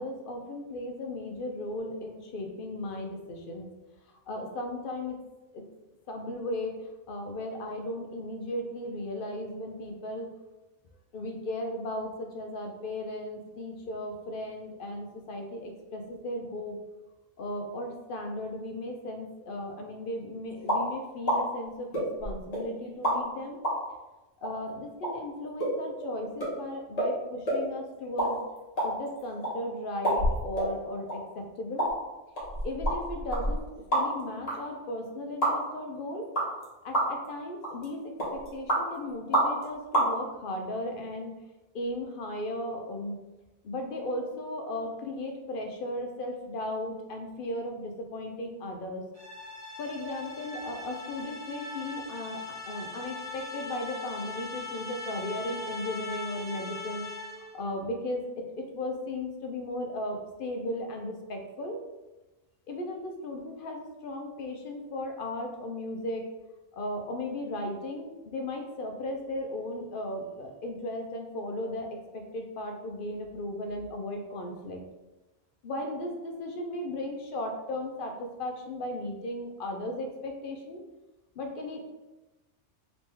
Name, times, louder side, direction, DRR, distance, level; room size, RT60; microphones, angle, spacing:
voice 1, 0.0-3.7 4.3-5.2 5.5-5.6 6.1-6.8 7.1-10.3 11.1-16.8 17.4-23.6 24.4-28.4 28.8-31.9 32.6-33.7 33.9-36.3 36.8-41.4 41.7-43.2 43.6-49.0 49.8-57.1 57.5-61.8 62.7-66.3 66.7-74.8 75.6-80.8 81.4-81.8, left 1 dB, 60° left, 3 dB, 0.6 m, -36 dB
sound 1, 20.7-20.8 21.3-21.4 21.9-22.6 23.0-23.2 23.6-23.8 24.4-24.5 25.0-25.1 25.6-25.7 26.0-26.1 26.4-26.5 27.0-27.1 27.5-27.6 28.0-28.3 28.6-29.5 30.0-30.7 31.1-31.2 31.8-31.9 32.4-34.2 34.5-34.6 35.4-35.5 36.3-36.6 36.9-37.3 37.6-37.8 38.2-38.8 39.3-39.6 39.9-40.1, right 1 dB, 35° left, 1.2 m, -27 dB
sound 2, 49.1-57.6, left 3 dB, 20° right, 0.6 m, -40 dB
3.3 x 3.0 x 3.2 m, 1.1 s
omnidirectional pair, 1.2 m